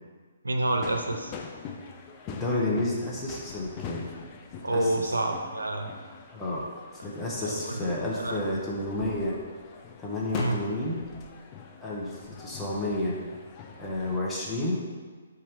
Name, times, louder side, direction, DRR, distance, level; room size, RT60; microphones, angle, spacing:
voice 1, 0.4-1.3 4.6-5.9 7.4-7.8 8.2-8.5 10.3-10.6, right 2 dB, 80° right, 4 dB, 0.4 m, -28 dB
sound 1, 0.6-14.2, left 5 dB, 30° left, 0.4 m, -43 dB
voice 2, 2.3-4.0 4.6-5.1 6.3-6.7 7.0-9.4 10.0-11.0 11.8-13.2 13.8-14.8, left 1 dB, 10° left, -6 dB, 0.8 m, -30 dB
4.2 x 2.5 x 4.3 m, 1.5 s
figure-of-eight pair, 130°, 0 cm